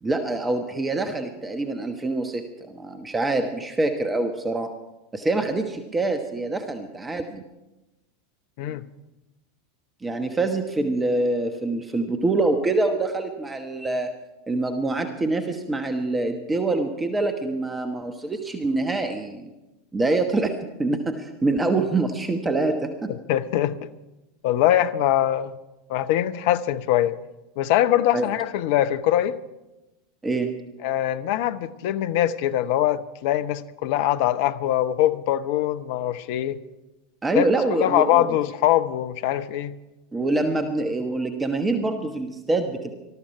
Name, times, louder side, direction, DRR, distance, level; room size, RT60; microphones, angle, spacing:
voice 1, 0.0-4.7 5.1-7.4 10.0-14.1 14.5-19.5 19.9-20.5 20.8-23.1 28.1-28.3 30.2-30.5 37.2-38.3 40.1-42.9, right 2 dB, 15° right, 1.2 m, -25 dB
voice 2, 8.6-8.9 23.1-23.9 24.4-25.5 25.9-27.2 27.6-29.4 30.8-36.6 37.3-39.8, left 12 dB, 55° left, 0.7 m, -23 dB
20.0 x 13.0 x 4.7 m
figure-of-eight pair, 85°, 0 cm